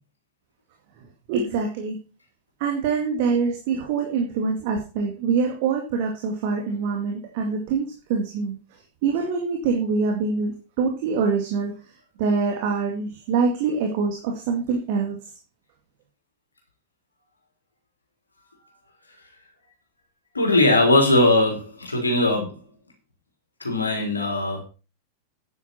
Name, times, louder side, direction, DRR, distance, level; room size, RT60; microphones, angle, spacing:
voice 1, 1.3-2.0 2.6-8.6 9.0-11.7 12.2-15.2, right 5 dB, 50° right, 2 dB, 2.2 m, -24 dB
voice 2, 20.3-22.5 23.6-24.6, left 2 dB, 80° left, 1 dB, 3.6 m, -20 dB
9.9 x 9.7 x 4.4 m, 0.33 s
figure-of-eight pair, 90°, 0 cm